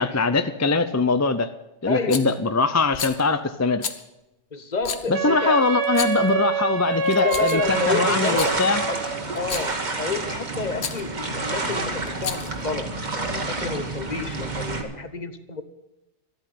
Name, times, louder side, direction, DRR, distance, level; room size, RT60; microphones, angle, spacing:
voice 1, 0.0-1.5 1.8-3.8 5.1-8.8, left 3 dB, 20° left, 11 dB, 0.4 m, -22 dB
voice 2, 1.9-2.3 4.5-5.7 7.2-8.6 8.9-9.0 9.3-15.6, left 4 dB, 40° left, 10 dB, 1.1 m, -30 dB
Rattle, 2.1-2.4 2.9-3.2 3.8-4.0 4.8-5.1 5.8-6.3 7.0-7.7 8.2-8.5 9.4-9.8 10.8-11.0 12.1-12.6, left 6 dB, 70° left, 1.3 m, -32 dB
Wind instrument woodwind instrument, 5.1-9.2, right 4 dB, 60° right, 1.3 m, -26 dB
sound 1, 7.6-14.8, right 3 dB, 40° right, 1.6 m, -29 dB
13.0 x 8.9 x 9.1 m, 0.93 s
omnidirectional pair, 1.2 m